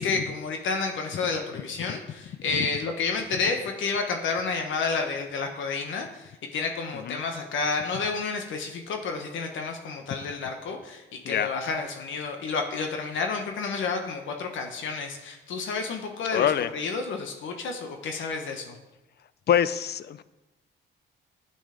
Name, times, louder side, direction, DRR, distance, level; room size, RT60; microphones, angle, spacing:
voice 1, 0.0-18.8, left 4 dB, 75° left, 4 dB, 1.3 m, -30 dB
voice 2, 16.3-16.7 19.5-20.2, left 9 dB, 55° left, 16 dB, 0.5 m, -25 dB
9.1 x 8.4 x 5.1 m, 1.0 s
cardioid pair, 90°, 20 cm